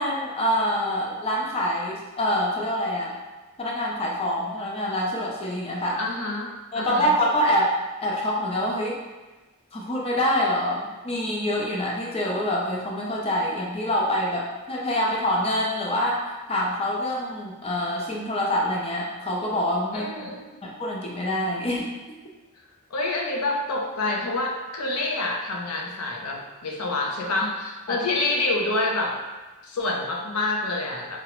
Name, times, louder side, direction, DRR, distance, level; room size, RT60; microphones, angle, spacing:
voice 1, 0.0-3.1 3.6-6.0 6.7-7.7 8.0-9.0 9.7-16.2 16.5-20.1 20.6-21.9 27.9-28.0, equal, 25° left, -3 dB, 0.4 m, -25 dB
voice 2, 6.0-6.5 6.8-7.1 19.9-20.4 22.9-29.2 29.6-31.2, left 2 dB, 90° left, 0 dB, 0.5 m, -27 dB
4.6 x 2.0 x 2.9 m, 1.2 s
head